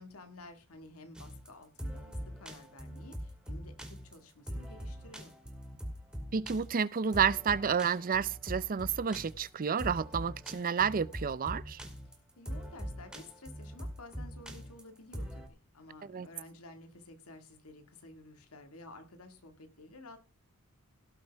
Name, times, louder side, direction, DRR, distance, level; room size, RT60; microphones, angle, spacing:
voice 1, 0.0-5.3 12.0-20.2, left 2 dB, 75° left, 1.9 m, -52 dB
sound 1, 1.2-15.5, equal, 5° right, 2.3 m, -42 dB
voice 2, 6.3-11.8 16.0-16.3, right 6 dB, 40° right, 0.5 m, -30 dB
17.5 x 7.9 x 3.4 m
head